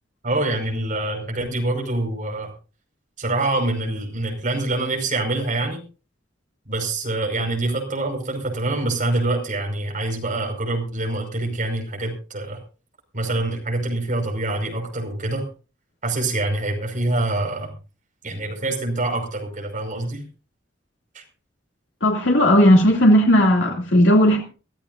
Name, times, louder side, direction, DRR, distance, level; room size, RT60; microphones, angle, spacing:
voice 1, 0.2-2.5 3.2-5.8 6.7-12.6 13.1-15.5 16.0-17.7 18.2-20.3 21.1-21.2, right 2 dB, 45° right, 5.3 m, -25 dB
voice 2, 22.0-24.4, equal, 85° left, 2.5 m, -15 dB
23.5 x 14.0 x 2.6 m
head